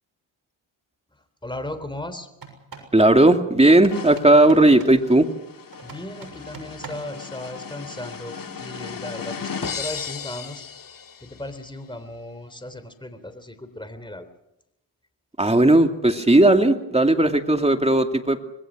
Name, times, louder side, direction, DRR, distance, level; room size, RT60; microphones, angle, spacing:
voice 1, 1.4-2.3 5.8-10.6 11.2-14.3, left 1 dB, 10° left, 10 dB, 3.5 m, -36 dB
sound 1, 2.3-3.0 3.7-5.0 5.7-7.2, right 5 dB, 50° right, 6.8 m, -43 dB
voice 2, 2.9-5.3 15.4-18.4, right 1 dB, 15° right, 5 dB, 2.6 m, -16 dB
sound 2, 3.9-11.5, left 6 dB, 45° left, 2.0 m, -36 dB
26.0 x 20.5 x 6.3 m, 0.85 s
cardioid pair, 70°, 46 cm